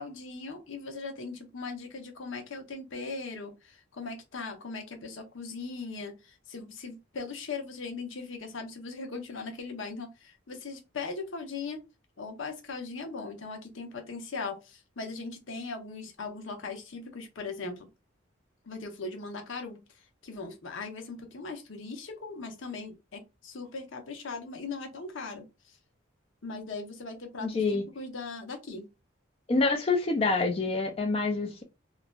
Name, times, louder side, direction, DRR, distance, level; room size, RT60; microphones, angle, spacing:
voice 1, 0.0-11.8 12.2-17.9 18.7-19.8 20.2-25.4 26.4-28.9, left 4 dB, 85° left, 0.7 m, -39 dB
voice 2, 27.4-27.8 29.5-31.6, left 3 dB, 30° left, 0.3 m, -26 dB
3.0 x 2.4 x 2.2 m
head